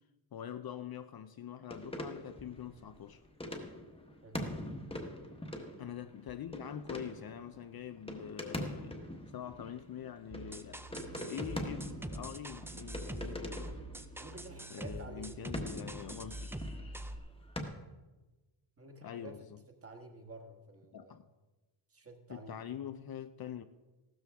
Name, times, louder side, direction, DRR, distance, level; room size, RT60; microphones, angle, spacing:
voice 1, 0.3-3.2 5.8-9.0 9.3-10.8 11.2-13.8 14.7-16.8 19.0-19.6 20.9-21.2 22.3-23.6, left 9 dB, 50° left, 0.5 m, -44 dB
sound 1, 1.7-17.6, left 1 dB, 10° left, 1.1 m, -44 dB
sound 2, 10.3-17.2, right 1 dB, 5° right, 0.4 m, -44 dB
voice 2, 14.2-15.4 18.8-21.2 21.9-22.6, right 2 dB, 30° right, 1.5 m, -51 dB
15.5 x 13.0 x 3.5 m
wide cardioid pair, 160°, 50 cm